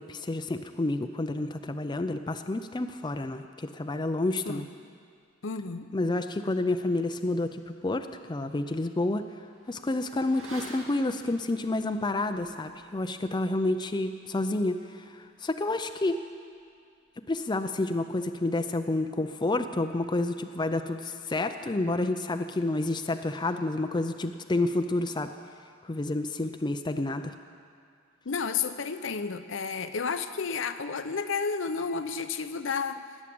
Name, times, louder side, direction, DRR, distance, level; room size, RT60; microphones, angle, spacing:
voice 1, 0.0-4.7 5.9-9.2 9.7-16.2 17.3-25.3 25.8-27.3, left 2 dB, 20° left, 8 dB, 0.5 m, -29 dB
voice 2, 5.4-5.9 28.3-33.0, left 5 dB, 70° left, 9 dB, 0.7 m, -31 dB
Motorcycle / Accelerating revving vroom, 8.4-17.8 18.1-18.2, right 1 dB, 75° right, 2.6 m, -53 dB
19.5 x 7.4 x 8.5 m, 2.3 s
head